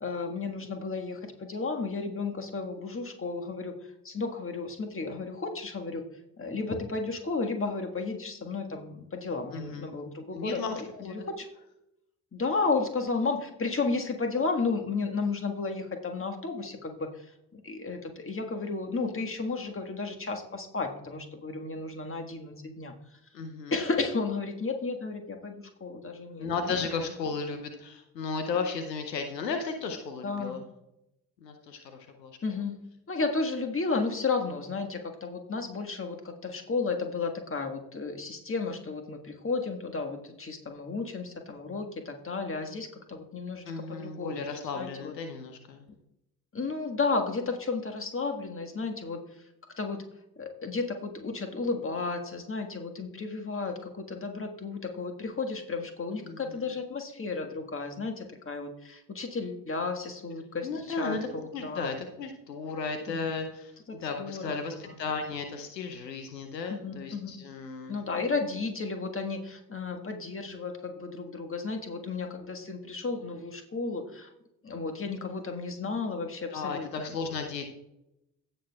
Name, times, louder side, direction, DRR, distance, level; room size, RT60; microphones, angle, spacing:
voice 1, 0.0-3.8 4.0-6.0 6.4-11.5 12.3-17.3 17.5-22.9 23.7-26.7 30.2-30.6 32.4-32.8 33.1-45.1 46.5-49.2 49.8-50.0 50.4-61.9 63.1-63.2 63.9-64.6 66.7-67.4 67.9-74.3 74.6-77.2, left 4 dB, 25° left, 4 dB, 1.6 m, -33 dB
voice 2, 9.5-9.9 10.3-11.3 23.3-23.7 26.4-30.6 31.4-32.3 43.7-45.9 56.2-56.7 60.6-68.0 76.5-77.7, left 4 dB, 90° left, 6 dB, 0.8 m, -35 dB
16.5 x 6.5 x 2.3 m, 0.85 s
figure-of-eight pair, 45°, 49 cm